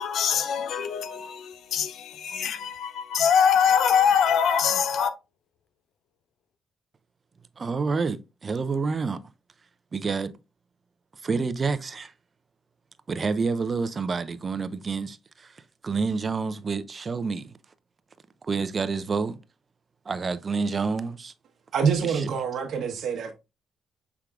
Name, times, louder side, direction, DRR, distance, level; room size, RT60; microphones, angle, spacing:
voice 1, 0.0-5.1, left 7 dB, 70° left, 0.5 m, -23 dB
voice 2, 7.6-9.2 9.9-10.3 11.2-12.1 13.1-15.5 15.8-17.6 18.4-19.4 20.1-21.3 22.0-22.3, right 4 dB, 35° right, 0.4 m, -28 dB
voice 3, 21.7-23.3, right 6 dB, 65° right, 1.0 m, -26 dB
6.0 x 3.5 x 2.3 m
cardioid pair, 90°, 0 cm